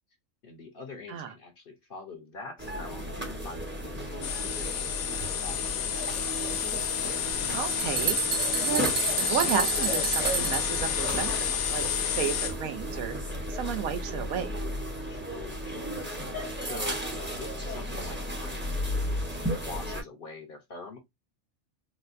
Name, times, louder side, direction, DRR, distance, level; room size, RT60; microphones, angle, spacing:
voice 1, 0.4-6.2 15.1-15.9 16.6-18.8 19.6-21.0, left 4 dB, 50° left, 0.8 m, -44 dB
sound 1, 2.6-20.0, equal, 10° right, 0.6 m, -34 dB
sound 2, 4.2-12.5, left 9 dB, 90° left, 1.1 m, -30 dB
sound 3, 7.3-7.4 7.7-10.8, right 8 dB, 65° right, 0.5 m, -30 dB
voice 2, 7.5-13.2 13.5-14.6, right 8 dB, 80° right, 1.1 m, -33 dB
4.0 x 2.2 x 2.5 m
omnidirectional pair, 1.5 m